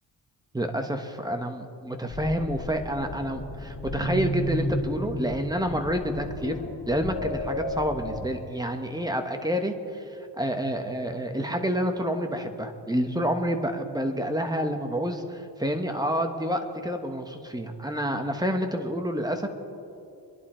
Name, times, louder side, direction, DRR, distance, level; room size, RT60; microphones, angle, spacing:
voice 1, 0.5-19.5, equal, 10° right, 5 dB, 1.3 m, -28 dB
sound 1, 2.1-8.2, equal, 85° left, 1.9 m, -32 dB
25.5 x 11.0 x 4.5 m, 2.7 s
wide cardioid pair, 110°, 42 cm